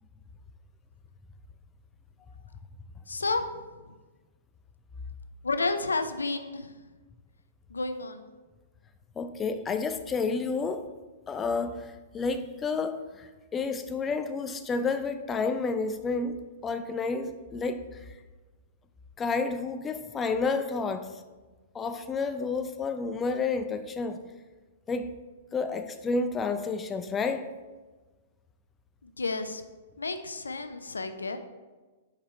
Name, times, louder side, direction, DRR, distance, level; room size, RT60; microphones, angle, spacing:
voice 1, 3.1-3.6 5.4-6.7 7.7-8.3 29.0-29.6 30.0-31.4, left 3 dB, 85° left, 9 dB, 0.5 m, -31 dB
voice 2, 9.2-10.8 11.3-16.4 16.6-17.8 19.2-21.1 21.7-24.2 24.9-25.1 25.5-27.5, left 4 dB, 20° left, 9 dB, 0.5 m, -30 dB
5.0 x 4.7 x 4.3 m, 1.3 s
hypercardioid pair, 115°, 0 cm